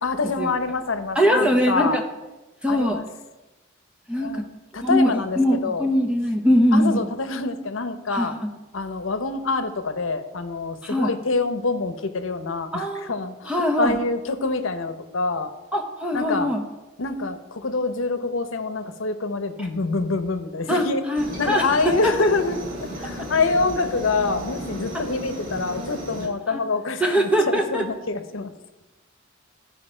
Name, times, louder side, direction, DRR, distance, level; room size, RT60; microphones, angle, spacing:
voice 1, 0.0-2.0 2.7-3.0 4.2-4.5 4.7-5.9 6.7-8.4 8.7-15.5 16.1-16.5 17.0-21.0 21.4-28.5, left 3 dB, 80° left, 10 dB, 0.8 m, -26 dB
voice 2, 1.1-2.0 2.6-3.0 4.1-4.5 4.8-7.1 8.1-8.3 10.8-11.1 12.7-13.1 13.5-13.9 15.7-16.6 19.6-19.7 20.7-22.1 23.2-23.3 24.9-25.0 26.5-26.6 27.0-27.8, equal, 5° right, 2 dB, 0.7 m, -22 dB
Aircraft, 21.2-26.3, equal, 45° right, 2.4 m, -34 dB
14.5 x 5.1 x 4.4 m, 1.1 s
head